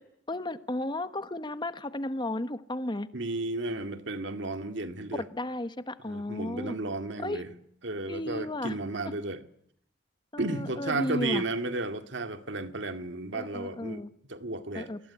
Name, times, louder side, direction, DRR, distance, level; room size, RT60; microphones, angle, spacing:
voice 1, 0.3-3.1 5.1-6.8 7.2-7.4 8.1-8.7 10.3-11.4 13.3-14.1 14.7-15.0, left 1 dB, 25° left, 1.2 m, -34 dB
voice 2, 3.1-5.3 6.0-7.5 7.8-9.4 10.4-14.0 14.3-14.9, right 2 dB, 65° right, 2.1 m, -33 dB
28.0 x 20.0 x 9.9 m
head